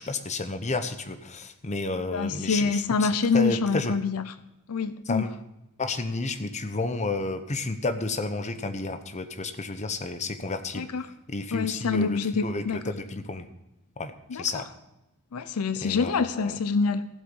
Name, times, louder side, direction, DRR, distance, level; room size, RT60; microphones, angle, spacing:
voice 1, 0.0-3.1 3.3-4.0 5.1-5.3 5.8-10.9 11.3-13.5 14.0-14.7 15.8-16.6, left 3 dB, 30° left, 9 dB, 0.9 m, -31 dB
voice 2, 2.1-4.3 4.7-5.3 10.7-11.1 11.5-12.8 14.3-14.6 15.3-17.1, left 4 dB, 80° left, 13 dB, 0.6 m, -26 dB
15.5 x 8.0 x 5.4 m, 0.93 s
head